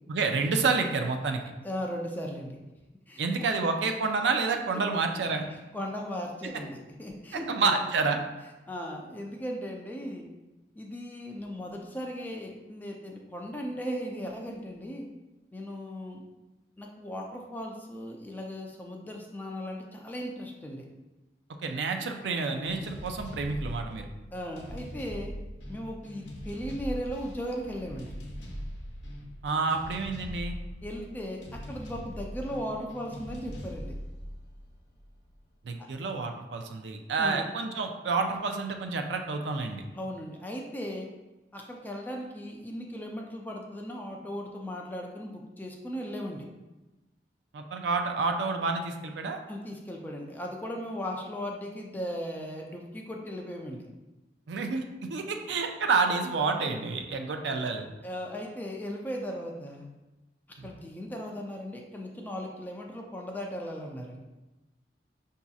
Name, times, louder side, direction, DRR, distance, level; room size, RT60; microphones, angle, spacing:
voice 1, 0.1-1.4 3.2-5.5 7.5-8.2 21.6-24.1 29.4-30.6 35.6-39.8 47.5-49.4 54.5-57.9 60.6-60.7, right 4 dB, 75° right, 5 dB, 0.4 m, -29 dB
voice 2, 1.6-2.6 3.1-3.5 5.7-7.8 8.7-10.3 10.8-15.1 15.5-16.2 16.8-20.9 24.3-25.3 25.7-28.1 30.8-34.0 37.2-37.5 39.9-41.1 41.5-46.4 49.5-53.9 58.0-59.9 60.6-64.2, equal, 10° left, 0 dB, 0.4 m, -37 dB
sound 1, 22.6-35.4, equal, 85° left, 0.7 m, -41 dB
5.9 x 2.7 x 2.3 m, 1.1 s
head